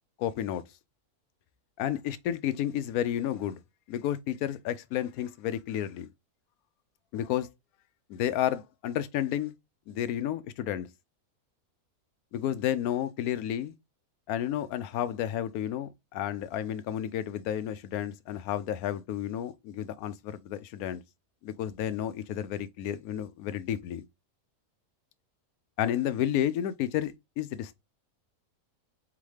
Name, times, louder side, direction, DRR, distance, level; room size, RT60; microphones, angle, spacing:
voice 1, 0.2-0.6 1.8-3.6 3.9-6.1 7.1-7.5 8.1-9.5 9.9-10.9 12.3-13.7 14.3-21.0 21.4-24.0 25.8-27.8, left 11 dB, 80° left, 1.0 m, -31 dB
4.2 x 3.6 x 3.2 m
omnidirectional pair, 1.5 m